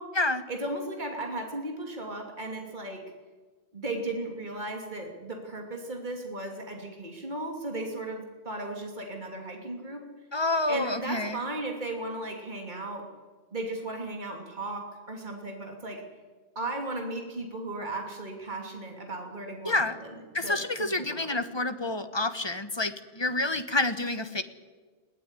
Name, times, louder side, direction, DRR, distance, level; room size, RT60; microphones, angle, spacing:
voice 1, 0.5-3.0 3.7-10.0 10.7-13.1 13.5-16.0 16.5-21.5, right 2 dB, 45° right, 2 dB, 3.1 m, -36 dB
voice 2, 10.3-11.4 19.6-20.0 20.3-24.4, left 2 dB, 25° left, 9 dB, 1.4 m, -28 dB
21.0 x 17.5 x 9.8 m, 1.4 s
omnidirectional pair, 1.1 m